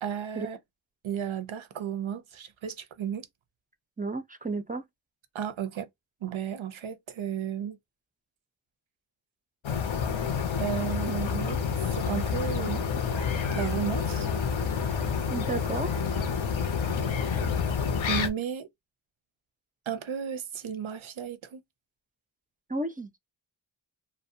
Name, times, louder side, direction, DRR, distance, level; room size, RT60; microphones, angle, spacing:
voice 1, 0.0-0.6 1.0-3.3 5.3-5.9 6.2-7.8 10.6-12.8 13.5-14.3 18.1-18.7 19.9-21.6, right 8 dB, 85° right, 0.5 m, -33 dB
voice 2, 4.0-4.8 15.3-15.9 22.7-23.1, right 3 dB, 20° right, 0.3 m, -32 dB
sound 1, 9.6-18.3, left 6 dB, 80° left, 0.6 m, -28 dB
2.5 x 2.0 x 2.6 m
wide cardioid pair, 45°, 46 cm